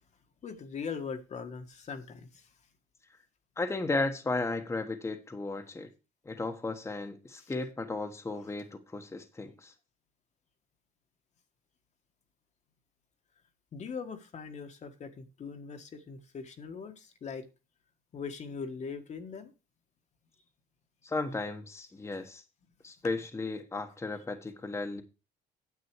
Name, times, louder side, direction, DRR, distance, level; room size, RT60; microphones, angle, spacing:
voice 1, 0.4-2.5 7.4-7.5 13.7-17.5 18.1-19.5, left 5 dB, 45° left, 1.6 m, -41 dB
voice 2, 3.6-5.9 6.2-9.7 21.0-22.4 22.8-25.0, left 3 dB, 15° left, 1.3 m, -34 dB
9.7 x 8.0 x 4.7 m
cardioid pair, 110°, 17 cm